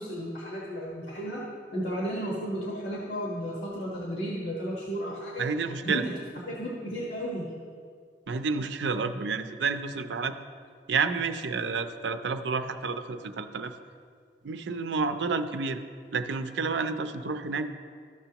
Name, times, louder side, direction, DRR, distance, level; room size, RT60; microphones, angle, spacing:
voice 1, 0.0-1.4 1.7-5.5 5.8-6.0 6.5-7.5, equal, 90° left, -4 dB, 1.3 m, -33 dB
voice 2, 5.4-6.0 8.3-10.3 10.9-13.8 14.4-15.8 16.1-17.7, right 4 dB, 80° right, 9 dB, 0.5 m, -30 dB
13.5 x 6.7 x 2.9 m, 2.1 s
head